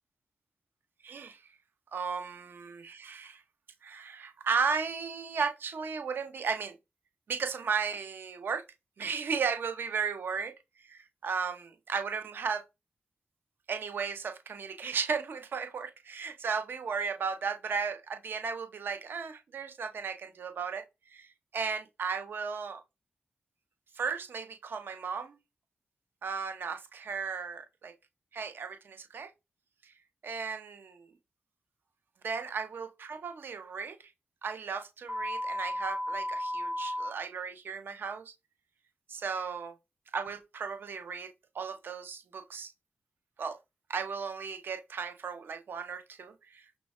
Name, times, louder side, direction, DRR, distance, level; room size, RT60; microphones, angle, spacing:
voice 1, 1.0-1.4 1.9-3.4 3.8-6.8 7.3-8.6 9.0-10.5 10.8-12.6 13.7-20.8 21.1-21.3 21.5-22.8 24.0-25.4 26.2-27.9 28.3-29.3 30.2-31.1 32.2-34.0 34.4-38.3 39.1-39.8 40.1-42.7 43.4-43.6 43.9-46.6, right 5 dB, 70° right, 0.5 m, -35 dB
sound 1, 35.1-37.1, left 1 dB, 5° right, 0.4 m, -34 dB
3.1 x 2.2 x 4.1 m
wide cardioid pair, 130°, 4 cm